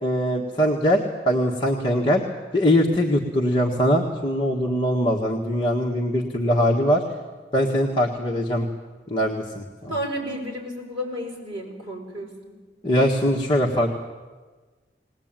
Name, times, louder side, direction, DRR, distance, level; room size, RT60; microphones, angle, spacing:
voice 1, 0.0-2.2 2.5-7.0 7.5-8.7 9.1-9.9 12.8-14.0, equal, 25° left, -1 dB, 1.7 m, -22 dB
voice 2, 9.9-12.3, equal, 30° right, -2 dB, 6.0 m, -31 dB
20.5 x 19.5 x 9.0 m, 1.3 s
head